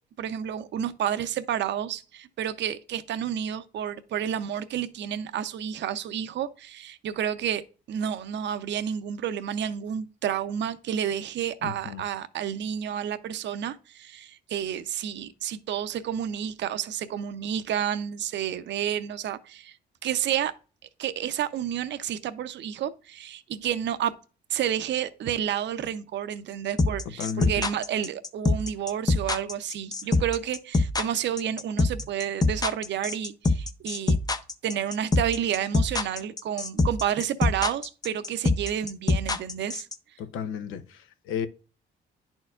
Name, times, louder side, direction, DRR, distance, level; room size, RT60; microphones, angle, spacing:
voice 1, 0.2-19.8 20.0-20.5 21.0-24.1 24.5-34.2 34.6-39.9, right 9 dB, 65° right, 0.6 m, -30 dB
voice 2, 11.6-12.0 27.2-27.6 40.2-41.5, left 7 dB, 90° left, 0.7 m, -33 dB
sound 1, 26.8-39.9, left 3 dB, 20° left, 0.6 m, -24 dB
10.5 x 4.4 x 2.4 m
cardioid pair, 90°, 20 cm